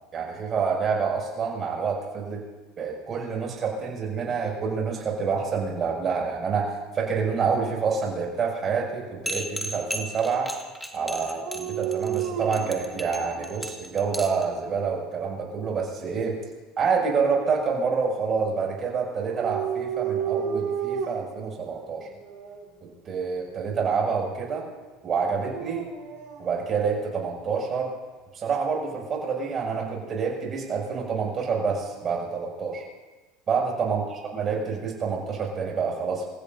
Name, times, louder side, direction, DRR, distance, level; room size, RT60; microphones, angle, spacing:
voice 1, 0.1-2.4 2.8-10.5 10.9-16.4 16.8-22.1 22.8-24.6 25.0-25.8 26.4-27.9 28.3-32.8 33.5-36.3, right 5 dB, 35° right, -1 dB, 6.8 m, -27 dB
sound 1, 9.3-14.4, equal, 5° left, 2.1 m, -35 dB
Dog, 11.4-13.6 14.2-15.0 19.1-21.4 22.2-22.6 25.2-26.5, right 8 dB, 60° right, 5.9 m, -32 dB
28.0 x 15.5 x 2.8 m, 1.3 s
supercardioid pair, 100°, 0 cm